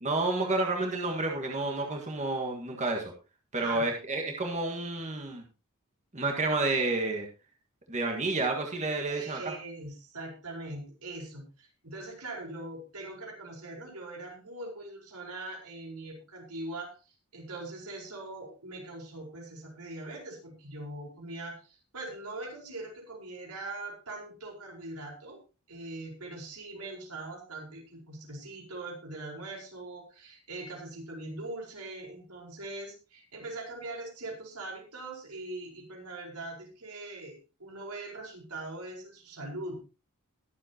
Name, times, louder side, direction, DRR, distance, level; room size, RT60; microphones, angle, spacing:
voice 1, 0.0-3.1 3.5-5.4 6.1-7.3 7.9-9.5, right 2 dB, 30° right, 2 dB, 1.7 m, -30 dB
voice 2, 3.5-3.9 9.1-25.4 25.7-39.8, right 2 dB, 85° right, 0 dB, 4.7 m, -41 dB
21.0 x 7.6 x 2.9 m, 0.32 s
head